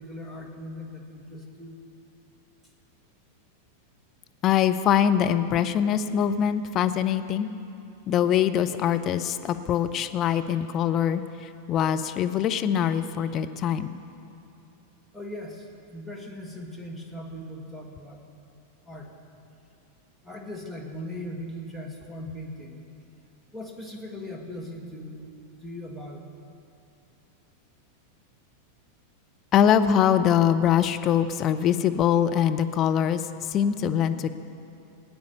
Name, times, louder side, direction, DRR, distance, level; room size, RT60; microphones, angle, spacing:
voice 1, 0.0-1.8 15.1-18.2 18.9-19.1 20.2-22.8 23.5-26.3, left 1 dB, 5° right, 1 dB, 1.9 m, -39 dB
voice 2, 4.4-7.5 8.1-14.0 29.5-34.3, left 9 dB, 30° left, 8 dB, 0.6 m, -23 dB
18.0 x 9.3 x 6.8 m, 2.7 s
figure-of-eight pair, 90°, 0 cm